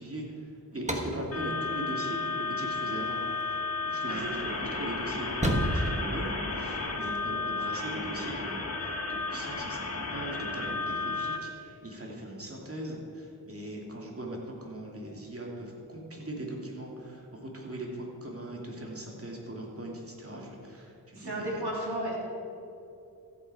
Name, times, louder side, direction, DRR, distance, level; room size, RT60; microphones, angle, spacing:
voice 1, 0.0-8.9 9.3-21.6, right 1 dB, 35° right, -2 dB, 2.4 m, -40 dB
sound 1, 0.7-7.1, right 1 dB, 20° right, 1.3 m, -35 dB
sound 2, 1.3-11.4, left 3 dB, 40° left, 1.6 m, -33 dB
voice 2, 21.1-22.1, right 1 dB, 85° right, -4 dB, 3.0 m, -33 dB
14.0 x 8.3 x 4.7 m, 2.7 s
wide cardioid pair, 55°, 39 cm